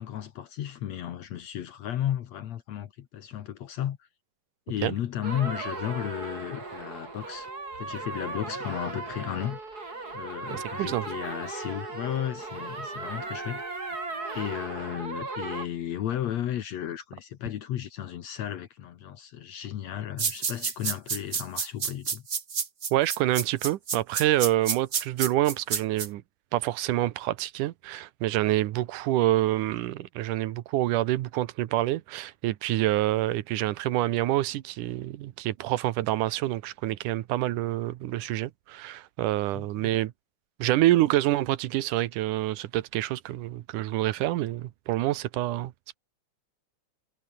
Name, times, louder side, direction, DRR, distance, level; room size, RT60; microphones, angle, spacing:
voice 1, 0.0-4.1 4.7-7.5 7.8-9.6 10.1-14.0 14.3-22.2 39.6-40.0, left 11 dB, 65° left, 2.3 m, -34 dB
sound 1, 5.2-15.7, right 3 dB, 30° right, 4.4 m, -37 dB
voice 2, 10.5-11.1 22.9-26.2 26.5-40.1 40.6-45.7, right 15 dB, 85° right, 2.5 m, -27 dB
sound 2, 20.2-26.1, right 6 dB, 65° right, 0.6 m, -29 dB
omnidirectional pair, 3.5 m